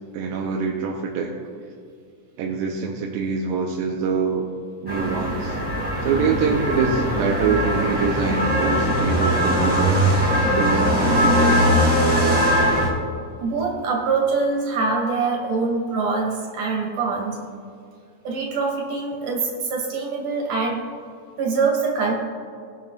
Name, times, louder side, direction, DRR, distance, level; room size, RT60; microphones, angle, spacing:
voice 1, 0.1-1.4 2.4-4.5 4.8-5.6 6.0-10.1 10.5-11.9, right 5 dB, 85° right, 0 dB, 2.5 m, -24 dB
sound 1, 4.9-12.9, equal, 5° right, 1.8 m, -20 dB
voice 2, 13.4-17.4 18.3-20.8 21.4-22.1, right 4 dB, 65° right, -1 dB, 3.6 m, -24 dB
21.0 x 7.0 x 2.5 m, 2.4 s
omnidirectional pair, 3.9 m